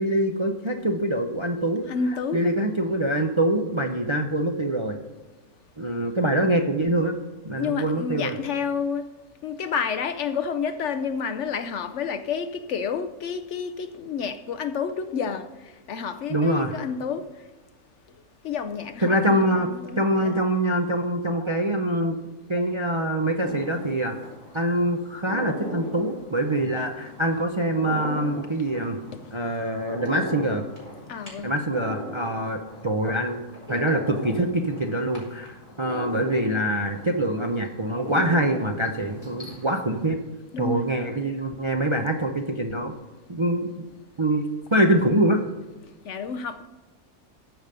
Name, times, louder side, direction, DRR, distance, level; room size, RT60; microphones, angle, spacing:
voice 1, 0.0-5.0 5.8-7.1 7.5-8.4 16.3-16.8 19.0-19.7 20.0-22.2 22.5-24.1 24.5-29.0 29.3-30.6 31.4-33.4 33.7-40.2 40.6-42.9 43.3-43.7 44.2-44.4 44.7-45.4, right 1 dB, 30° right, 0.5 m, -24 dB
voice 2, 1.9-2.4 7.5-9.1 9.4-17.3 18.4-20.3 29.1-29.3 31.1-31.5 40.5-40.8 46.0-46.6, left 6 dB, 65° left, 0.8 m, -30 dB
sound 1, 23.4-40.0, equal, 25° left, 4.2 m, -39 dB
13.5 x 5.2 x 6.7 m
omnidirectional pair, 1.5 m